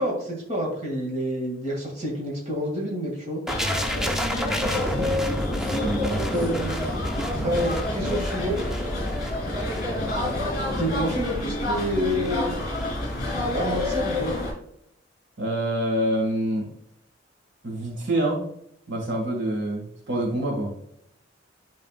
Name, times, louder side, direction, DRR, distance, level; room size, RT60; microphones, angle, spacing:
voice 1, 0.0-3.4 6.3-6.9 7.4-9.0 10.8-12.5 13.5-14.3, equal, 40° right, -2 dB, 2.2 m, -28 dB
sound 1, 3.5-14.5, left 1 dB, 50° left, 2.5 m, -28 dB
sound 2, 3.5-13.3 13.6-13.8, equal, 5° right, 0.6 m, -33 dB
voice 2, 4.4-5.1 5.6-6.2 15.4-16.7 17.6-18.4 18.9-20.7, right 1 dB, 70° right, -1 dB, 1.9 m, -27 dB
10.5 x 4.2 x 2.4 m, 0.74 s
head